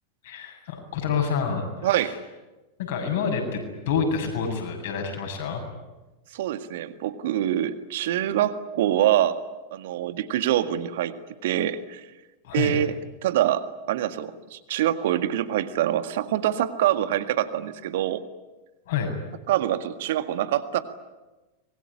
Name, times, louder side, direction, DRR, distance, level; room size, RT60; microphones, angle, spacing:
voice 1, 0.2-2.2 2.8-5.6 12.4-12.8 18.9-19.1, left 6 dB, 55° left, 4 dB, 7.7 m, -28 dB
voice 2, 1.8-2.1 6.3-9.4 9.7-11.1 11.4-12.1 12.5-12.9 13.2-18.2 19.5-20.8, right 12 dB, 55° right, 10 dB, 1.8 m, -25 dB
25.0 x 22.0 x 10.0 m, 1.1 s
figure-of-eight pair, 90°, 0 cm